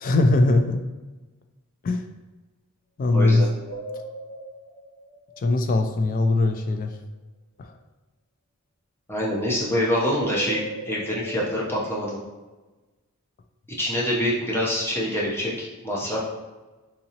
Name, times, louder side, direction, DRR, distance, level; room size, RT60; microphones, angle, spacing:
voice 1, 0.0-0.8 1.8-2.0 3.0-3.5 5.4-7.0 7.6-7.7, left 2 dB, 40° left, 6 dB, 0.3 m, -21 dB
voice 2, 3.1-3.5 9.1-12.2 13.8-16.2, equal, 10° left, -5 dB, 0.7 m, -25 dB
sound 1, 3.6-6.1 10.1-11.8, right 2 dB, 65° left, 0.8 m, -38 dB
3.7 x 2.8 x 2.8 m, 1.2 s
head